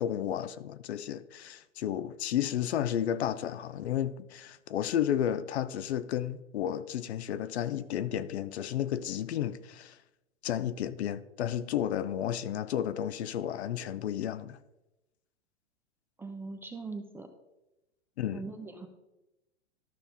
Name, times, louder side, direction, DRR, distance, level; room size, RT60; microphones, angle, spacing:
voice 1, 0.0-10.0 10.4-14.6 18.2-18.4, left 10 dB, 65° left, 0.6 m, -32 dB
voice 2, 16.2-17.3 18.3-18.9, right 3 dB, 5° right, 0.5 m, -41 dB
12.5 x 5.5 x 3.5 m
hypercardioid pair, 115°, 36 cm